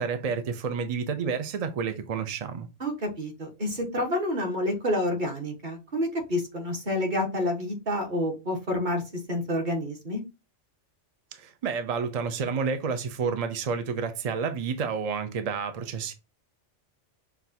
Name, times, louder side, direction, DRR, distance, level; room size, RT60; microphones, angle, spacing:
voice 1, 0.0-2.7 11.4-16.1, right 5 dB, 60° right, 0.4 m, -30 dB
voice 2, 2.8-9.0 9.3-10.2, left 1 dB, 40° right, 1.2 m, -28 dB
5.8 x 2.3 x 2.7 m
omnidirectional pair, 1.2 m